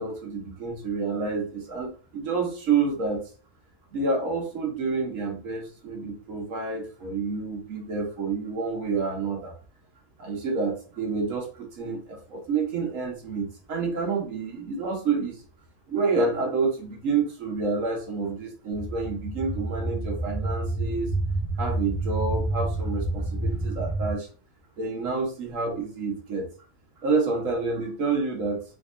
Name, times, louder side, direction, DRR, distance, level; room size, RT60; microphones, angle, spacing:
voice 1, 0.0-3.2 3.9-9.5 10.2-15.4 15.9-21.1 21.6-24.3 24.8-26.5 27.0-28.6, right 4 dB, 65° right, 0 dB, 1.2 m, -28 dB
sound 1, 18.7-24.1, right 2 dB, 30° left, 1.0 m, -29 dB
3.6 x 2.8 x 2.4 m, 0.39 s
omnidirectional pair, 1.6 m